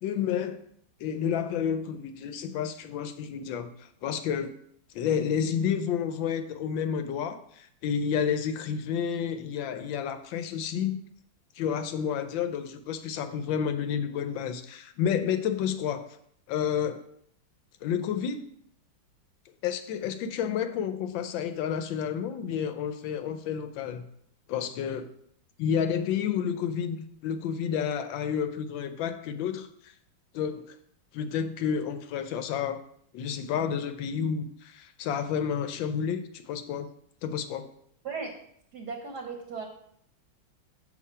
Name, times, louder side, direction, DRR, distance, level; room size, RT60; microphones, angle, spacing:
voice 1, 0.0-0.6 1.0-4.5 4.9-11.0 11.6-16.1 16.5-17.0 17.8-18.4 19.6-24.1 24.5-25.1 25.6-29.9 30.3-30.8 31.1-32.8 33.1-36.9 37.2-37.7, left 8 dB, 75° left, 9 dB, 1.3 m, -30 dB
voice 2, 38.7-39.7, right 5 dB, 60° right, 3 dB, 1.2 m, -36 dB
7.2 x 4.4 x 5.5 m, 0.68 s
omnidirectional pair, 2.3 m